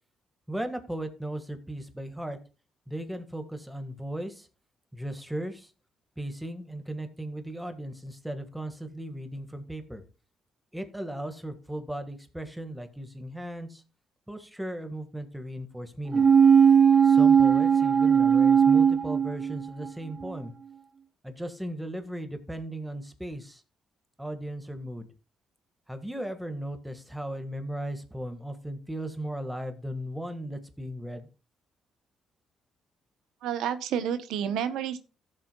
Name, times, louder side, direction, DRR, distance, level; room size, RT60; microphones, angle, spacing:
voice 1, 0.5-2.4 2.9-4.5 4.9-5.7 6.2-10.0 10.7-13.8 14.3-16.3 17.0-20.5 21.2-23.6 24.2-25.1 25.9-31.3, right 1 dB, 5° right, 7 dB, 1.6 m, -36 dB
sound 1, 16.1-19.9 20.2-20.3, right 7 dB, 35° right, 0.5 m, -19 dB
voice 2, 33.4-35.0, right 9 dB, 85° right, 11 dB, 0.8 m, -30 dB
15.0 x 7.5 x 2.3 m, 0.32 s
cardioid pair, 90°, 0 cm